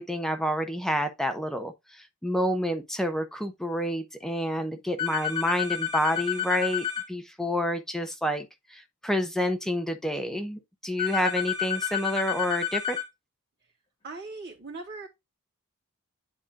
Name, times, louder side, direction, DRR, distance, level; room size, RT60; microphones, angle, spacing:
voice 1, 0.0-8.5 8.7-13.0, equal, ahead, 0.8 m, -29 dB
sound 1, 5.0-7.1 11.0-13.1, left 10 dB, 25° left, 2.3 m, -30 dB
voice 2, 14.0-15.1, right 3 dB, 50° right, 2.8 m, -39 dB
9.9 x 4.3 x 2.4 m
head